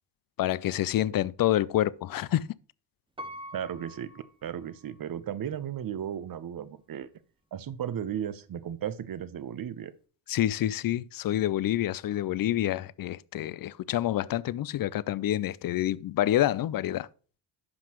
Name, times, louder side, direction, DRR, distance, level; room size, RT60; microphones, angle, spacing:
voice 1, 0.4-2.5 10.3-17.1, left 13 dB, 45° left, 0.5 m, -27 dB
Piano, 3.2-5.1 5.7-5.8, equal, 10° right, 1.0 m, -45 dB
voice 2, 3.5-4.1 4.4-7.1 7.5-9.9, right 9 dB, 45° right, 0.8 m, -35 dB
9.7 x 5.9 x 3.0 m
supercardioid pair, 70°, 48 cm